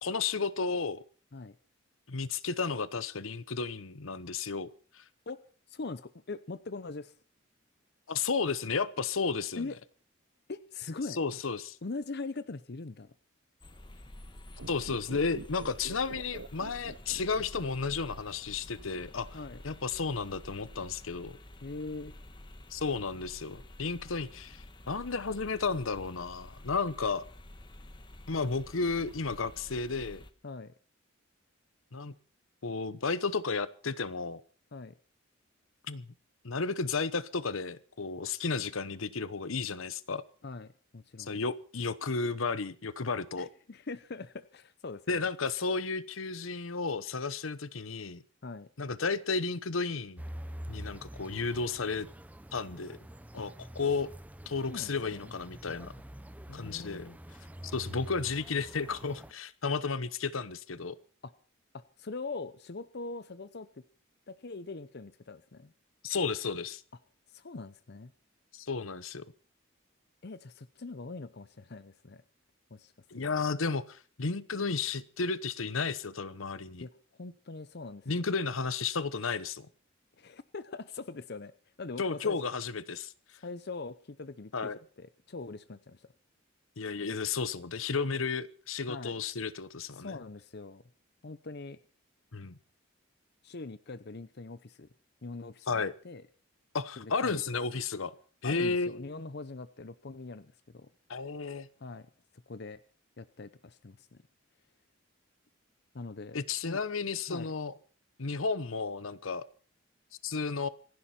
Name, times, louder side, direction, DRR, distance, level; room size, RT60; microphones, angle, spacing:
voice 1, 0.0-1.0 2.1-5.0 8.1-9.6 11.2-11.8 14.7-19.4 19.6-21.4 22.7-27.2 28.3-30.2 31.9-32.1 32.6-34.4 35.9-36.1 36.4-40.2 41.2-43.5 45.1-48.2 48.8-50.2 50.7-52.1 52.5-53.0 53.3-54.1 54.5-55.9 56.5-57.1 57.6-61.0 66.0-66.8 68.5-69.2 73.1-76.8 78.1-79.7 82.0-83.1 84.5-84.8 86.8-90.2 92.3-92.6 95.7-95.9 96.7-98.1 98.4-99.0 101.1-101.7 106.3-107.7 108.2-109.5 110.2-110.7, left 4 dB, 80° left, 1.0 m, -33 dB
voice 2, 5.7-7.2 9.6-9.8 10.5-11.2 11.8-13.1 19.3-19.6 21.6-22.1 30.4-30.7 34.7-35.0 40.4-41.4 43.4-45.2 48.4-48.7 53.4-53.5 54.7-55.3 56.5-57.2 61.2-61.3 61.7-63.8 64.3-65.7 67.3-68.1 70.2-72.2 72.7-73.3 76.8-76.9 77.2-78.1 80.2-81.5 81.8-82.4 83.3-86.1 88.9-89.2 89.9-90.8 91.2-91.8 93.4-94.9 95.2-96.3 97.0-97.4 98.4-100.9 101.8-102.1 102.5-102.8 103.2-104.2 105.9-106.8 107.3-107.5, left 3 dB, 55° left, 0.7 m, -42 dB
sound 1, 13.6-30.3, left 1 dB, 25° left, 1.2 m, -50 dB
sound 2, 14.5-17.9 18.2-18.3, right 3 dB, 70° right, 0.8 m, -46 dB
sound 3, 50.2-59.3, equal, 10° right, 0.7 m, -46 dB
26.5 x 11.5 x 4.4 m
head